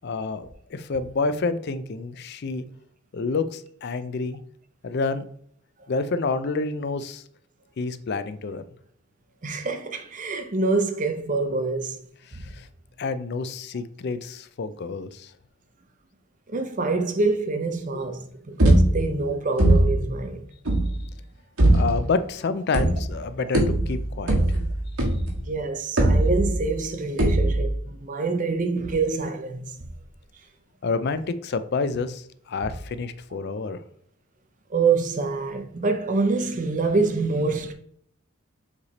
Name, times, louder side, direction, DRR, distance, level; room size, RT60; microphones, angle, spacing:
voice 1, 0.0-2.6 3.1-4.4 4.8-5.2 5.9-7.2 7.8-8.6 12.3-12.7 13.0-15.3 21.7-24.6 30.8-33.8, left 4 dB, 50° left, 0.4 m, -28 dB
voice 2, 9.4-12.0 12.3-12.4 16.5-20.5 25.4-29.7 34.7-37.7, right 3 dB, 35° right, 0.6 m, -26 dB
sound 1, 18.6-19.2 19.6-20.1 20.7-21.0 21.6-22.1 22.7-23.2 23.5-25.5 26.0-26.7 27.2-27.7, right 1 dB, 85° right, 1.7 m, -20 dB
7.3 x 3.3 x 4.1 m
head